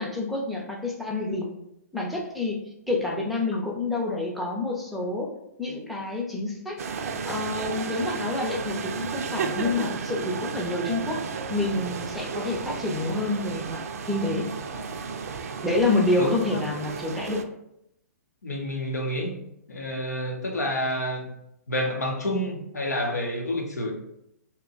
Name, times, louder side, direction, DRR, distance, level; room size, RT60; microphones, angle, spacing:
voice 1, 0.0-1.5 1.9-2.6 2.9-5.3 5.6-6.8 7.2-11.2 11.5-13.8 14.1-14.5 15.6-17.4, left 2 dB, ahead, -1 dB, 0.5 m, -28 dB
sound 1, 6.8-17.4, right 5 dB, 65° right, 0.4 m, -33 dB
voice 2, 16.1-16.6 18.4-19.3 19.7-21.3 21.7-24.0, equal, 90° left, 2 dB, 0.7 m, -29 dB
2.8 x 2.2 x 3.9 m, 0.80 s
hypercardioid pair, 130°, 9 cm